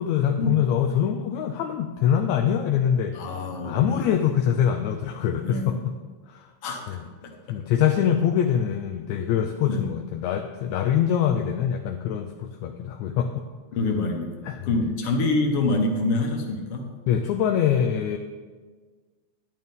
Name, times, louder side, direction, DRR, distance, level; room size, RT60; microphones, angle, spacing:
voice 1, 0.0-3.2 3.7-5.9 6.3-6.5 6.9-7.0 7.5-13.5 14.5-14.9 17.1-18.2, left 9 dB, 80° left, 5 dB, 1.8 m, -24 dB
voice 2, 3.1-4.2 5.4-5.8 6.6-6.8 7.2-7.3 9.7-9.8 13.7-14.3 14.6-16.9, left 2 dB, 55° left, 2 dB, 2.1 m, -26 dB
12.0 x 10.5 x 3.7 m, 1.4 s
omnidirectional pair, 3.4 m